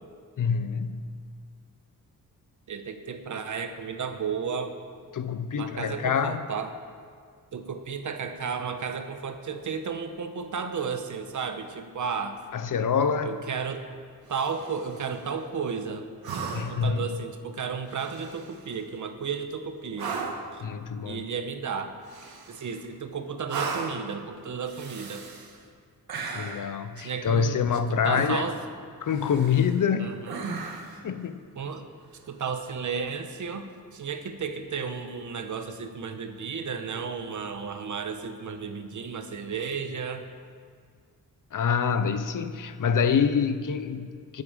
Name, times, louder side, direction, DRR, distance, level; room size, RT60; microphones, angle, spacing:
voice 1, 0.4-1.2 5.1-6.4 12.5-13.4 16.5-17.1 20.6-21.2 26.3-28.5 29.0-30.2 31.0-31.4 41.5-44.4, left 6 dB, 60° left, 11 dB, 0.7 m, -26 dB
voice 2, 2.7-4.7 5.5-6.7 7.5-12.4 13.2-13.8 14.3-16.1 16.6-20.1 20.5-20.6 21.0-22.0 22.5-25.2 27.0-28.5 30.0-30.4 31.6-31.8 32.3-33.7 33.9-40.3, right 6 dB, 55° right, 7 dB, 1.1 m, -33 dB
sound 1, 14.3-15.0 16.2-16.9 17.9-18.6 20.0-20.5 22.1-22.8 23.5-24.1 24.6-25.6 26.1-26.7 28.1-28.7 29.1-29.8 30.3-31.0 32.9-33.0, right 4 dB, 90° right, 1.6 m, -36 dB
19.5 x 8.5 x 5.0 m, 2.1 s
wide cardioid pair, 155°, 36 cm